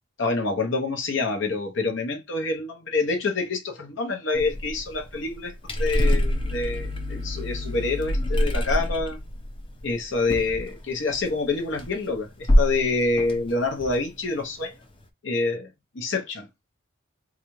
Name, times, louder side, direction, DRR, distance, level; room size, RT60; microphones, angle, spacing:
voice 1, 0.2-9.2 9.8-14.7 15.2-15.7 15.9-16.5, left 3 dB, 65° left, 0.9 m, -27 dB
sound 1, 4.3-11.3 11.6-12.1 12.4-12.9 13.2-14.4, equal, 25° left, 0.7 m, -26 dB
3.9 x 2.4 x 3.1 m
head